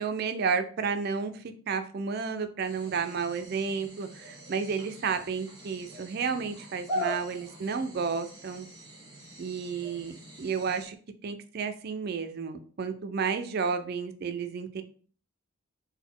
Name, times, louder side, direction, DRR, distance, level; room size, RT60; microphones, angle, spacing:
voice 1, 0.0-8.7 9.4-10.9 11.2-14.8, right 5 dB, 45° right, 9 dB, 0.3 m, -32 dB
sound 1, 2.6-10.9, equal, 20° right, 1.3 m, -41 dB
4.0 x 2.1 x 3.7 m, 0.43 s
head